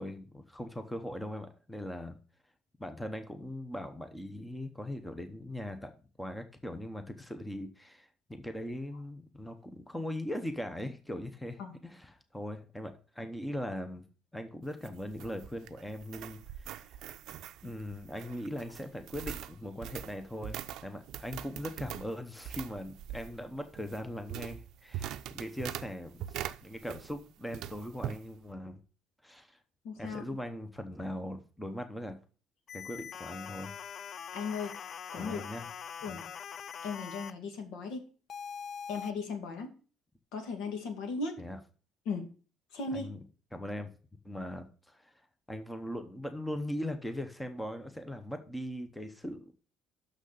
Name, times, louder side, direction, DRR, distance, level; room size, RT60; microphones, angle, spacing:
voice 1, 0.0-2.2 2.8-5.9 6.2-14.0 14.3-17.0 17.6-28.8 29.2-29.6 30.0-32.2 32.7-33.7 35.2-35.7 36.1-36.2 41.4-41.6 42.9-43.2 43.5-43.9 44.2-45.1 45.5-49.5, left 1 dB, 5° left, 8 dB, 0.8 m, -40 dB
sound 1, 14.6-27.2 27.5-28.2, right 11 dB, 65° right, 0.5 m, -43 dB
voice 2, 29.8-30.2 34.3-34.8 35.1-35.4 36.0-36.3 36.8-38.0 38.9-39.8 40.3-41.4 42.1-42.3 42.7-43.1, left 4 dB, 80° left, 5 dB, 2.1 m, -37 dB
sound 2, 32.7-37.3 38.3-39.1, left 7 dB, 40° left, 0.4 m, -43 dB
6.5 x 6.3 x 6.6 m, 0.38 s
cardioid pair, 150°, 0 cm